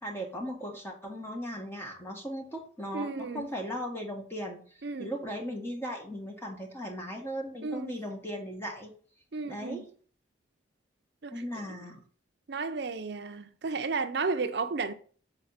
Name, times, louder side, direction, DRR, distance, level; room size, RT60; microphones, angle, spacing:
voice 1, 0.0-4.6 5.0-8.9 9.4-9.9 11.3-12.0, equal, 15° left, 1.7 m, -37 dB
voice 2, 2.9-3.5 4.8-5.1 7.6-7.9 9.3-9.9 11.2-11.6 12.5-14.9, right 4 dB, 60° right, 0.6 m, -33 dB
7.0 x 4.3 x 5.6 m
head